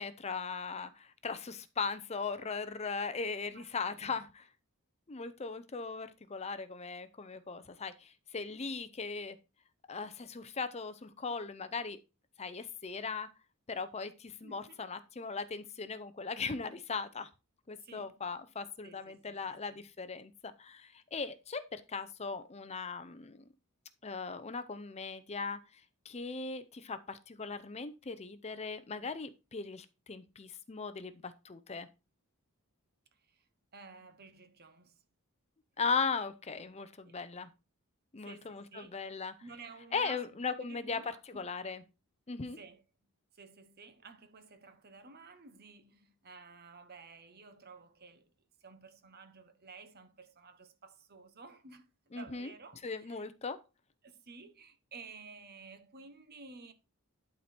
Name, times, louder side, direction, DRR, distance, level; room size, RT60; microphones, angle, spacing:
voice 1, 0.0-4.5 5.1-9.4 9.9-12.0 12.4-13.3 13.7-17.3 17.7-23.5 24.0-31.9 35.8-37.5 38.1-39.3 39.9-41.8 42.3-42.6 52.1-52.5 52.8-53.6, left 4 dB, 30° left, 0.6 m, -38 dB
voice 2, 3.5-4.1 14.4-14.8 17.8-18.1 18.8-19.8 33.3-33.4 33.7-35.0 37.0-37.2 38.2-39.1 39.4-41.5 42.6-42.8 43.3-48.3 48.6-51.9 52.1-53.3 54.0-56.7, right 4 dB, 45° right, 1.1 m, -53 dB
11.5 x 4.4 x 4.2 m
head